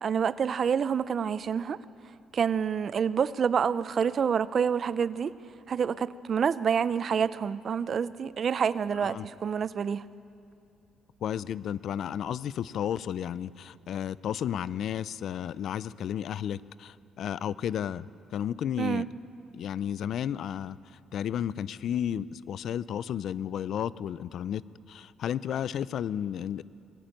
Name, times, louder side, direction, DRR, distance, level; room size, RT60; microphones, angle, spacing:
voice 1, 0.0-1.8 2.3-5.3 5.7-10.0 18.8-19.1, right 7 dB, 45° right, 16 dB, 0.5 m, -27 dB
voice 2, 11.2-19.1 19.5-26.6, left 9 dB, 60° left, 18 dB, 0.4 m, -33 dB
20.5 x 14.0 x 9.1 m, 2.6 s
cardioid pair, 130°, 0 cm